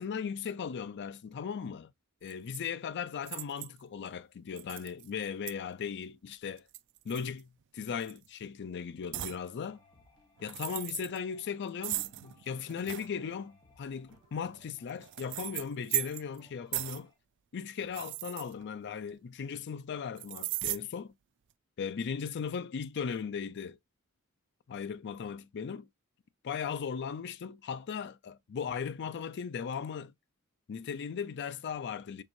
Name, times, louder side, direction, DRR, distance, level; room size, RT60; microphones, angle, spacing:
voice 1, 0.0-1.9 2.2-6.6 7.0-7.5 7.7-9.8 10.4-17.1 17.5-21.1 21.8-23.8 24.7-25.9 26.4-30.1 30.7-32.2, left 6 dB, 50° left, 0.4 m, -37 dB
sound 1, 2.3-2.6 3.3-3.8 4.6-5.1 5.5-5.6 6.6-7.6 8.0-8.3 9.1-9.4 10.4-11.2 11.8-13.1 14.1-16.4 16.7-17.1 17.8-19.1 20.2-20.8, right 17 dB, 55° right, 0.3 m, -37 dB
sound 2, 9.2-17.2, left 1 dB, 20° left, 1.2 m, -64 dB
4.6 x 3.6 x 2.5 m
head